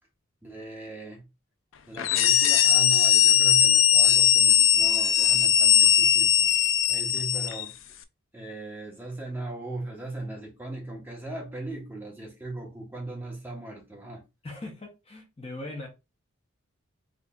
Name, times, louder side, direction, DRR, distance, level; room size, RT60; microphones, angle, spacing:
voice 1, 0.4-1.3 1.9-6.5 6.9-7.7 8.3-14.2, right 2 dB, 10° right, 1.0 m, -38 dB
sound 1, 2.0-7.7, left 9 dB, 65° left, 0.4 m, -20 dB
voice 2, 14.4-15.9, left 2 dB, 25° left, 0.8 m, -39 dB
3.9 x 3.2 x 2.3 m
head